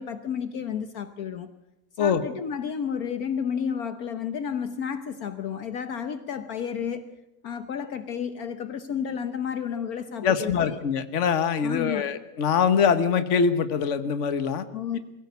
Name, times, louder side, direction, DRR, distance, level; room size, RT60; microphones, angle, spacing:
voice 1, 0.0-1.5 2.0-7.1 7.4-10.8 11.6-12.1 14.7-15.0, left 7 dB, 65° left, 10 dB, 1.4 m, -31 dB
voice 2, 10.2-14.6, left 6 dB, 50° left, 11 dB, 1.4 m, -23 dB
22.5 x 16.5 x 8.2 m, 0.91 s
omnidirectional pair, 1.7 m